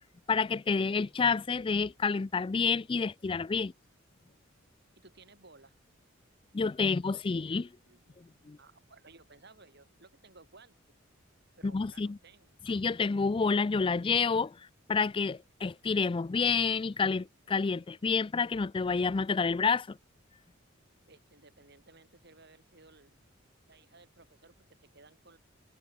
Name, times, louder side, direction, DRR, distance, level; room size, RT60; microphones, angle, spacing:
voice 1, 0.3-3.7 6.5-7.7 8.5-8.6 11.6-12.2 12.7-20.0, left 5 dB, 25° left, 0.4 m, -29 dB
voice 2, 5.0-5.7 7.9-10.8 11.5-12.6 21.1-23.1 23.7-25.4, right 3 dB, 55° right, 6.8 m, -58 dB
head